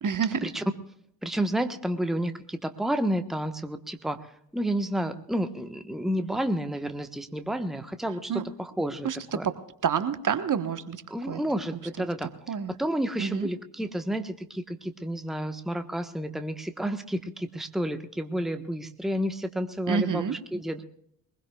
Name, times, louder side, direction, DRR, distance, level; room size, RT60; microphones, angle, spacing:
voice 1, 0.0-0.5 8.3-8.4 9.0-9.6 9.8-11.4 12.5-12.7 13.2-13.5 19.9-20.3, right 7 dB, 40° right, 10 dB, 1.3 m, -28 dB
voice 2, 1.2-9.4 11.1-12.3 12.8-20.8, right 1 dB, ahead, 8 dB, 1.2 m, -30 dB
22.5 x 21.0 x 2.4 m, 0.69 s
figure-of-eight pair, 45°, 50 cm